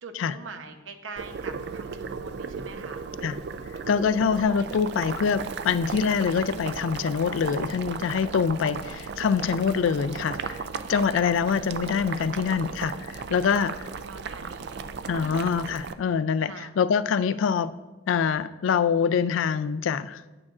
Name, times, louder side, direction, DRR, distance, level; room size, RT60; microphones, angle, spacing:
voice 1, 0.0-3.1 11.1-11.4 13.6-13.7 14.0-15.5 16.5-16.7, right 4 dB, 85° right, 6 dB, 0.8 m, -43 dB
Boiling, 1.2-15.9, right 5 dB, 55° right, 0.3 m, -36 dB
voice 2, 3.9-10.6 10.9-13.7 15.1-17.7 18.1-20.2, left 6 dB, 85° left, 15 dB, 0.3 m, -25 dB
9.6 x 8.6 x 2.4 m, 1.1 s
head